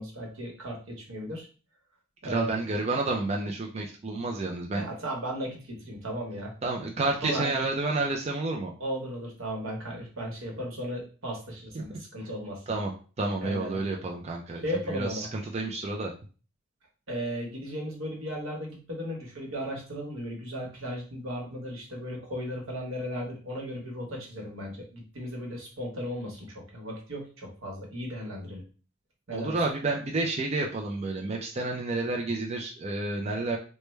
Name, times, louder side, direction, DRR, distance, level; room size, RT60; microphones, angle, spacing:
voice 1, 0.0-1.5 2.2-2.5 4.7-6.5 7.2-7.6 8.8-12.6 13.4-13.8 14.6-15.3 17.1-28.6 29.3-29.6, equal, 85° right, 0 dB, 1.0 m, -36 dB
voice 2, 2.2-4.8 6.6-8.7 11.7-11.8 12.7-12.9 13.2-16.1 29.3-33.6, right 2 dB, 30° right, 1 dB, 0.4 m, -30 dB
3.2 x 2.1 x 3.1 m, 0.37 s
head